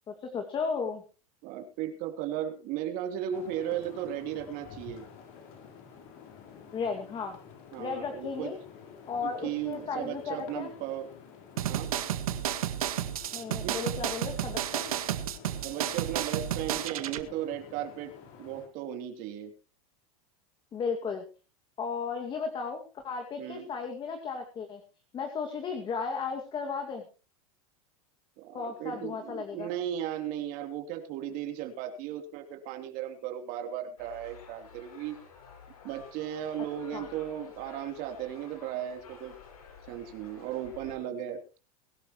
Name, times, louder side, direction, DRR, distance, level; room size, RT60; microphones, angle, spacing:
voice 1, 0.1-1.0 6.7-7.4 7.8-8.6 9.1-10.7 13.3-14.9 20.7-21.2 21.8-24.8 25.1-27.0 28.5-29.7 36.9-37.0, left 5 dB, 25° left, 4 dB, 2.2 m, -35 dB
voice 2, 1.4-5.0 7.7-8.5 9.2-11.1 11.6-11.9 13.5-13.8 15.6-18.1 18.4-19.5 23.4-23.7 28.4-35.2 35.8-39.3 39.9-41.6, right 10 dB, 50° right, 5 dB, 3.3 m, -36 dB
sound 1, 3.3-18.7, left 6 dB, 50° left, 4.1 m, -50 dB
sound 2, 11.6-17.2, right 11 dB, 90° right, 1.7 m, -32 dB
sound 3, 34.0-41.0, left 6 dB, 90° left, 5.5 m, -52 dB
22.5 x 12.0 x 3.1 m, 0.33 s
supercardioid pair, 130°, 18 cm